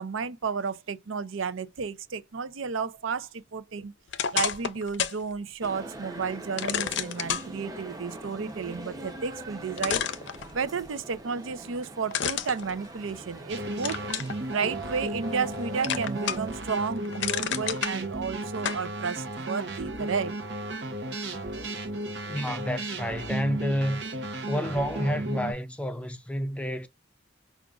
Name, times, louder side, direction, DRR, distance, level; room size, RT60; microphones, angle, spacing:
voice 1, 0.0-3.9 4.3-10.0 10.5-14.0 14.5-20.4, right 5 dB, 85° right, 0.6 m, -32 dB
sound 1, 4.1-5.2 5.6-5.7 6.6-7.5 9.2-9.3 9.8-10.9 12.1-13.4 13.8-14.4 14.9-15.5 15.8-16.6 16.9-17.9 18.6-18.8, left 8 dB, 65° left, 0.5 m, -30 dB
sound 2, 5.6-16.5, right 1 dB, 20° right, 0.9 m, -42 dB
sound 3, 13.5-25.5, right 1 dB, 60° right, 0.9 m, -34 dB
voice 2, 22.3-24.0 24.5-26.9, equal, 5° left, 0.4 m, -29 dB
4.9 x 2.4 x 2.3 m
head